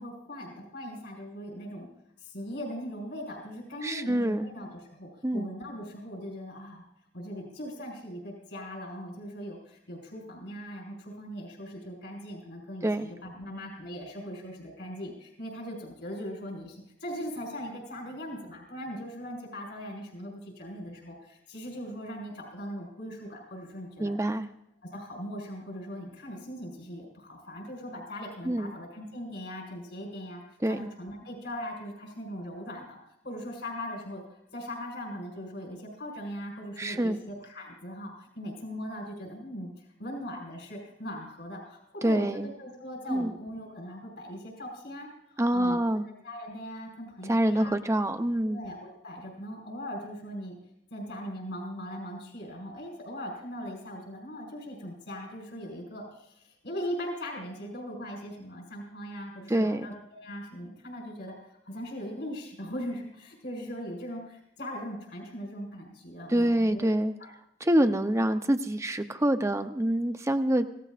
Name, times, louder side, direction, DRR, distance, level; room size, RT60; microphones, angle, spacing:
voice 1, 0.0-1.9 2.2-6.8 7.1-24.1 24.9-30.4 30.7-33.0 33.2-42.3 42.6-47.8 48.4-50.6 50.9-66.9 67.2-67.3, equal, 75° left, -2 dB, 5.2 m, -40 dB
voice 2, 3.8-4.5 5.2-5.5 12.8-13.1 24.0-24.5 28.4-28.7 30.6-30.8 36.8-37.2 42.0-42.5 43.1-43.3 45.4-46.1 47.2-48.6 59.5-59.9 66.3-67.1 67.6-70.6, right 1 dB, 15° right, 8 dB, 0.7 m, -26 dB
26.0 x 16.5 x 2.5 m, 0.76 s
head